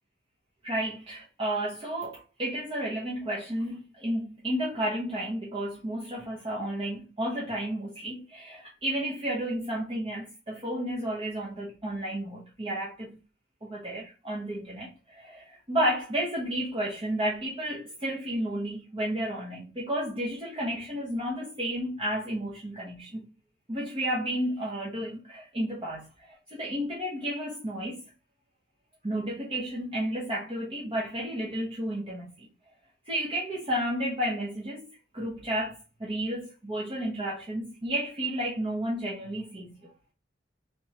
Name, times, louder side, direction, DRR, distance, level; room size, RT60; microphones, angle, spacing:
voice 1, 0.6-13.2 13.6-23.3 23.7-28.0 29.0-32.5 33.0-39.9, right 1 dB, 30° right, 0.8 m, -32 dB
3.3 x 3.0 x 2.8 m
head